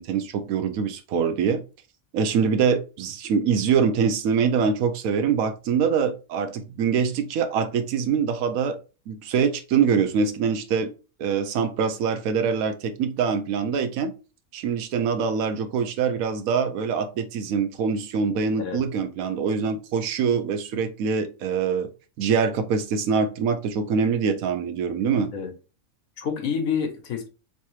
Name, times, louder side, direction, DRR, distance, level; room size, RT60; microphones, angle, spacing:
voice 1, 0.0-1.6 2.1-8.8 9.1-10.9 11.2-14.1 14.5-21.9 22.2-25.3, right 6 dB, 80° right, 1.0 m, -24 dB
voice 2, 26.2-27.3, left 6 dB, 75° left, 1.2 m, -28 dB
3.3 x 3.2 x 3.0 m
omnidirectional pair, 1.5 m